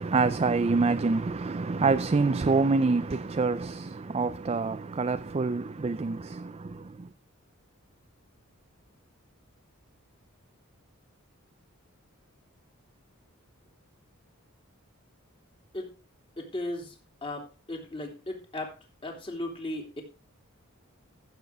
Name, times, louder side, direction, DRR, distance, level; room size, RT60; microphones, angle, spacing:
voice 1, 0.0-7.1, right 4 dB, 30° right, 0.4 m, -26 dB
voice 2, 16.4-18.7 19.0-20.0, left 1 dB, 25° left, 2.9 m, -36 dB
15.0 x 7.5 x 3.5 m
head